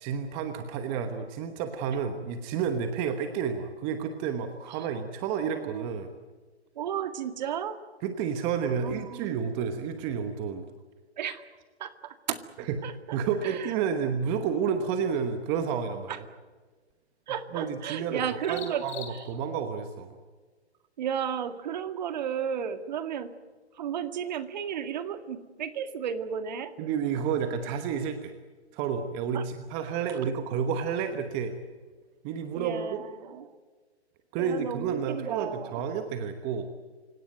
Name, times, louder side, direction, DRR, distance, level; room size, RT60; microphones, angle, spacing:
voice 1, 0.0-6.1 8.0-10.6 12.7-12.8 13.1-16.2 17.5-20.2 26.8-28.3 28.7-31.5 32.2-33.0 34.3-36.7, right 7 dB, 15° right, 8 dB, 1.1 m, -30 dB
voice 2, 6.8-7.8 8.8-9.6 11.2-11.4 11.8-12.4 12.8-13.7 16.1-16.2 17.3-18.8 19.1-19.2 21.0-23.3 23.7-26.7 29.3-29.5 32.5-33.6 34.4-35.8, right 8 dB, 40° right, 10 dB, 2.0 m, -34 dB
sound 1, 14.4-32.1, left 8 dB, 20° left, 3.8 m, -56 dB
28.5 x 17.5 x 9.1 m, 1.4 s
hypercardioid pair, 155°, 34 cm